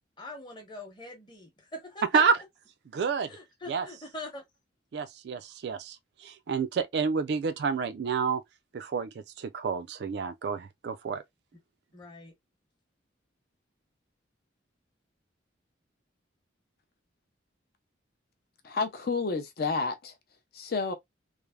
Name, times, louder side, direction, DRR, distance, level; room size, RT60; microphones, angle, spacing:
voice 1, 0.2-2.4 3.3-4.4 11.9-12.3, left 2 dB, 25° left, 0.8 m, -43 dB
voice 2, 2.9-3.3 3.7-3.9 4.9-6.0 6.2-8.4 8.7-9.1 9.4-11.2, right 5 dB, 55° right, 0.3 m, -29 dB
voice 3, 18.6-20.1 20.5-20.9, left 4 dB, 50° left, 0.4 m, -30 dB
3.2 x 2.0 x 2.2 m
head